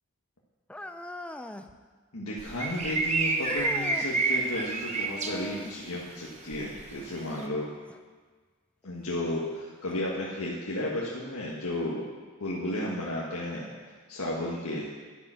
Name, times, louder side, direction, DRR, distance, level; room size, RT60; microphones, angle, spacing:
sound 1, 0.7-1.7 3.4-4.1 5.1-5.8 7.9-8.0 8.8-8.9 9.9-10.0, left 1 dB, 5° left, 0.4 m, -40 dB
voice 1, 2.1-7.7 8.8-12.0 12.4-13.7 14.1-14.8, left 1 dB, 80° left, -5 dB, 1.6 m, -33 dB
sound 2, 2.4-5.4 6.5-7.0, right 3 dB, 30° right, 0.9 m, -28 dB
11.0 x 8.9 x 6.3 m, 1.5 s
head